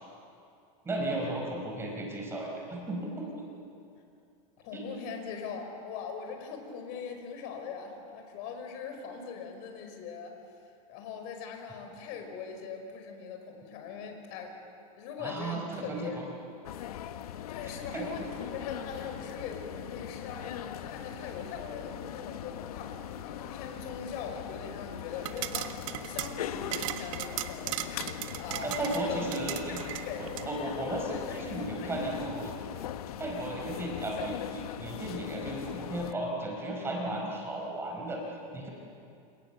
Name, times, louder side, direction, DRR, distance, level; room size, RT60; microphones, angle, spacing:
voice 1, 0.8-3.2 4.7-4.8 15.2-16.2 17.9-18.1 28.6-29.8 30.2-32.5 33.2-38.2 38.5-38.7, right 1 dB, 15° right, 0 dB, 4.9 m, -35 dB
voice 2, 4.6-10.3 10.9-14.6 15.0-16.2 17.5-29.4 29.9-30.3 31.0-32.3, left 6 dB, 50° left, 4 dB, 5.2 m, -41 dB
sound 1, 16.6-36.1, left 11 dB, 85° left, 1.4 m, -40 dB
sound 2, 25.2-30.5, right 13 dB, 65° right, 1.6 m, -38 dB
29.5 x 28.0 x 6.9 m, 2.5 s
supercardioid pair, 155°, 19 cm